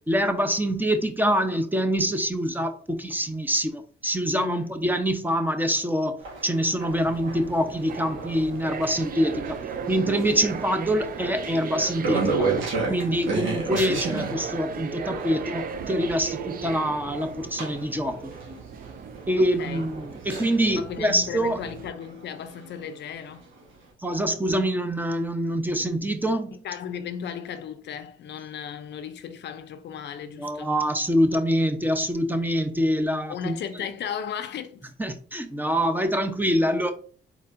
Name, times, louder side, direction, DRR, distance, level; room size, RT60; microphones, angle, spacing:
voice 1, 0.1-6.2 6.4-9.6 9.9-12.5 12.9-18.3 19.3-21.6 24.0-26.6 30.4-33.6 35.0-36.9, equal, 10° right, 0.7 m, -25 dB
voice 2, 4.4-4.7 11.0-11.1 13.7-14.1 19.4-19.9 20.8-23.4 26.6-30.7 33.3-34.9, left 8 dB, 60° left, 0.5 m, -36 dB
sound 1, 6.2-20.9 22.0-23.2 23.6-23.7, right 3 dB, 75° right, 1.8 m, -33 dB
sound 2, 6.9-21.9, right 7 dB, 45° right, 0.5 m, -37 dB
4.2 x 4.2 x 2.5 m
cardioid pair, 90°, 20 cm